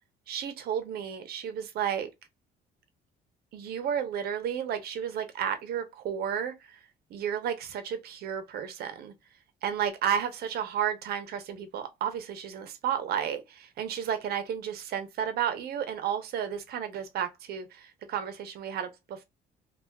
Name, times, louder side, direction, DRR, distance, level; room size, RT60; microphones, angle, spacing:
voice 1, 0.3-2.1 3.5-6.5 7.1-9.1 9.6-19.2, right 8 dB, 65° right, 0.8 m, -32 dB
3.4 x 2.4 x 2.3 m
cardioid pair, 110°, 17 cm